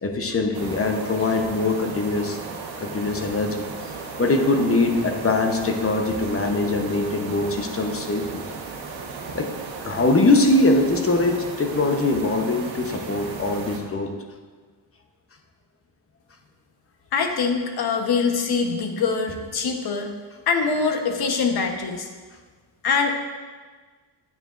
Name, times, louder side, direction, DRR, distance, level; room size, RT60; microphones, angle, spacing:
voice 1, 0.0-2.4 2.8-3.9 4.2-8.5 9.3-9.5 9.8-14.2, left 2 dB, 30° left, 4 dB, 0.9 m, -22 dB
sound 1, 0.5-13.8, right 4 dB, 85° right, 1.3 m, -35 dB
voice 2, 17.1-20.1 20.5-22.1 22.8-23.1, left 5 dB, 55° left, 4 dB, 1.2 m, -23 dB
9.7 x 9.1 x 2.6 m, 1.5 s
cardioid pair, 100°, 45 cm